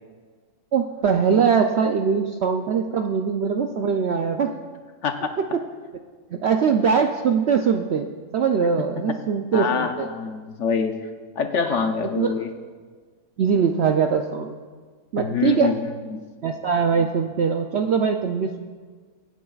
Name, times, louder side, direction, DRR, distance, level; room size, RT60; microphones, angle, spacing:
voice 1, 0.7-4.5 5.4-5.5 6.3-10.1 11.7-11.9 12.2-12.3 13.4-14.6 15.1-15.7 16.4-18.6, right 6 dB, 65° right, 4 dB, 0.6 m, -22 dB
voice 2, 9.5-11.0 11.4-12.5 15.2-15.8 16.1-16.2, left 6 dB, 60° left, 6 dB, 0.9 m, -25 dB
24.0 x 9.0 x 2.4 m, 1.5 s
omnidirectional pair, 1.6 m